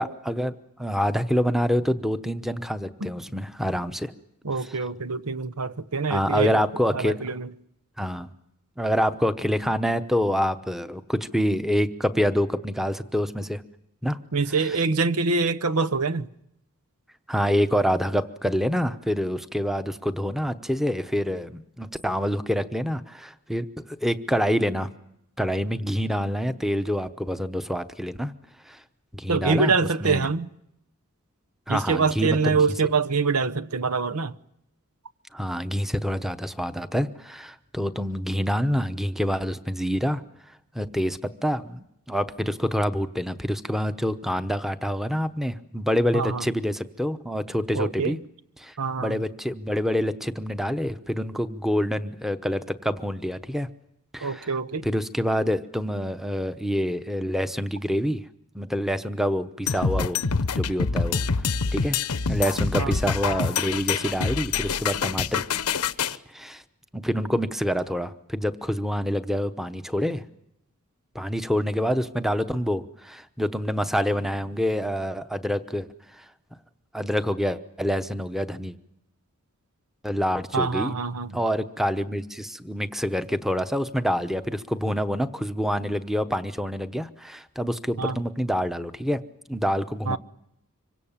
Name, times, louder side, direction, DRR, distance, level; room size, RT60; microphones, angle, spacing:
voice 1, 0.0-4.1 6.1-7.2 8.0-8.3 8.8-13.6 14.0-14.2 17.3-23.7 24.0-24.9 25.4-28.3 28.7-28.8 29.1-29.7 30.0-30.3 31.7-32.6 35.3-40.2 40.7-48.2 48.6-53.7 54.1-54.5 54.8-58.2 58.5-60.2 60.5-61.2 61.7-62.0 62.3-65.4 66.3-66.6 66.9-70.2 71.1-75.9 76.1-76.2 76.9-78.8 80.0-80.9 81.3-89.2 89.5-90.2, equal, ahead, 0.9 m, -26 dB
voice 2, 4.4-6.6 6.9-7.5 14.3-16.3 29.3-30.5 31.7-34.4 46.1-46.4 47.7-48.2 48.8-49.2 54.2-54.9 62.8-62.9 80.5-81.3 88.0-88.2 90.1-90.2, right 4 dB, 85° right, 1.0 m, -25 dB
sound 1, 59.7-66.2, left 5 dB, 85° left, 0.9 m, -26 dB
26.0 x 24.0 x 7.4 m
head